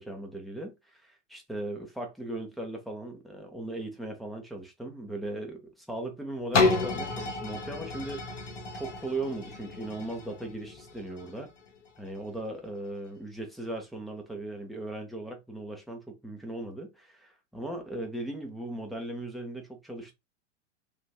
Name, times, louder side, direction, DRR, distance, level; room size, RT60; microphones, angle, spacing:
voice 1, 0.0-8.3 8.7-11.5 12.0-20.1, right 2 dB, ahead, 0.6 m, -38 dB
sound 1, 6.5-12.3 12.8-12.9, left 3 dB, 75° left, 0.8 m, -31 dB
3.3 x 2.5 x 2.2 m
figure-of-eight pair, 90°, 36 cm